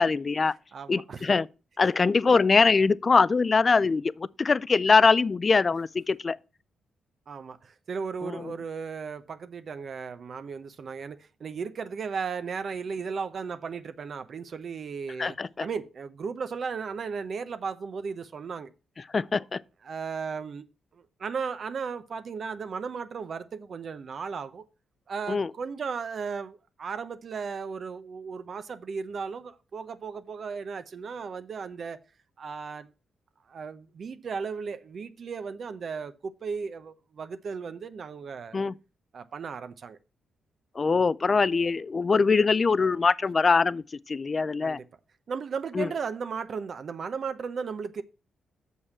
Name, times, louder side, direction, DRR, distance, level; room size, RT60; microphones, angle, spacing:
voice 1, 0.0-0.5 0.9-1.5 1.8-6.4 8.2-8.5 15.2-15.7 19.1-19.6 25.3-25.5 38.5-38.7 40.8-44.8 45.7-45.9, left 4 dB, 35° left, 0.3 m, -23 dB
voice 2, 0.7-1.2 7.3-18.7 19.8-20.6 20.9-24.6 25.1-32.0 32.4-32.9 33.5-38.6 39.1-40.0 44.6-44.9 45.3-48.0, right 5 dB, 55° right, 0.7 m, -35 dB
6.5 x 5.4 x 7.1 m
cardioid pair, 95°, 0 cm